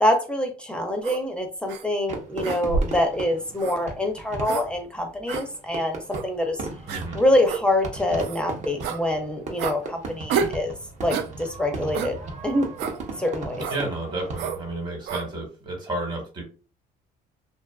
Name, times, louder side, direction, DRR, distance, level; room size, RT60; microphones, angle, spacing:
voice 1, 0.0-6.7 7.1-10.7 11.0-12.2 12.4-12.7 13.2-13.7, left 1 dB, 5° left, 4 dB, 0.5 m, -25 dB
sound 1, 1.0-1.2 1.7-1.8 2.4-3.0 3.6-3.8 4.4-4.7 5.3-5.4 6.1-6.3 6.9-7.0 7.5-7.6 8.2-8.4 8.8-9.0 9.6-9.8 10.3-10.6 11.1-11.3 11.9-12.1 12.8-13.0 13.6-13.8 14.4-14.6 15.1-15.3, right 6 dB, 85° right, 0.4 m, -29 dB
Fireworks, 2.1-14.8, right 3 dB, 45° right, 0.7 m, -37 dB
voice 2, 6.9-7.2 13.7-16.4, right 2 dB, 25° right, 0 dB, 1.1 m, -31 dB
2.6 x 2.4 x 2.3 m, 0.35 s
cardioid pair, 110°, 17 cm